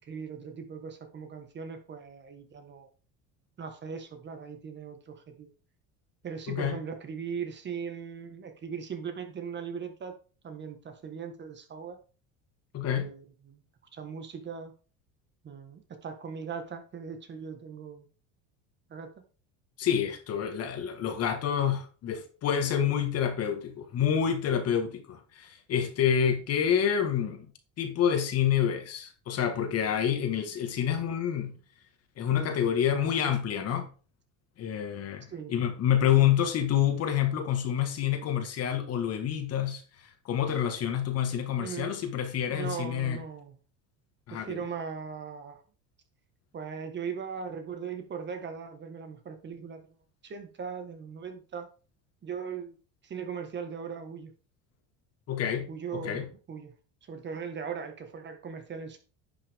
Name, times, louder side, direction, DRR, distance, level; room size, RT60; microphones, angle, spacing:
voice 1, 0.0-2.9 3.6-5.5 6.2-10.1 10.4-12.0 12.9-13.6 13.9-14.7 15.4-18.0 18.9-19.1 32.3-32.6 32.9-33.4 35.3-35.5 36.2-36.3 41.6-42.0 42.5-43.6 44.3-45.6 46.5-49.9 50.2-51.7 52.2-52.8 53.0-54.3 55.7-56.7 57.0-59.0, right 6 dB, 30° right, 1.6 m, -39 dB
voice 2, 12.7-13.1 19.8-27.5 27.8-31.6 32.2-33.9 34.6-43.2 44.3-44.6 55.3-55.7 55.9-56.2, left 9 dB, 45° left, 1.8 m, -28 dB
10.5 x 6.1 x 3.6 m
cardioid pair, 125°, 34 cm